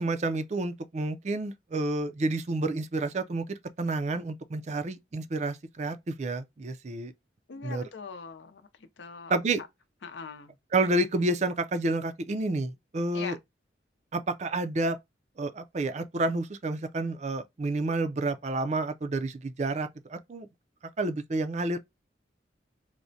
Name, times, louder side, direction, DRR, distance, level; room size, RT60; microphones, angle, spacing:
voice 1, 0.0-7.1 7.6-7.8 9.3-9.6 10.7-13.4 14.1-15.0 15.4-20.5 21.0-21.8, right 2 dB, 40° right, 0.4 m, -29 dB
voice 2, 7.5-9.7 10.0-10.6 13.1-13.4, left 5 dB, 80° left, 0.6 m, -42 dB
4.7 x 2.1 x 2.6 m
head